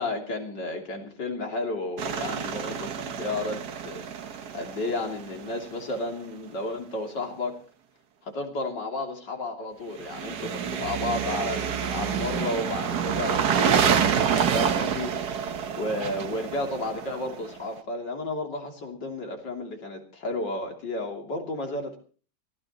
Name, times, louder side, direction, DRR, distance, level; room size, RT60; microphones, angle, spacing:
voice 1, 0.0-4.0 4.5-7.6 8.2-15.1 15.5-22.0, left 2 dB, 90° left, 2 dB, 3.7 m, -32 dB
sound 1, 2.0-5.8 10.0-17.7, right 7 dB, 70° right, 1.7 m, -28 dB
23.5 x 16.5 x 3.0 m, 0.39 s
omnidirectional pair, 1.8 m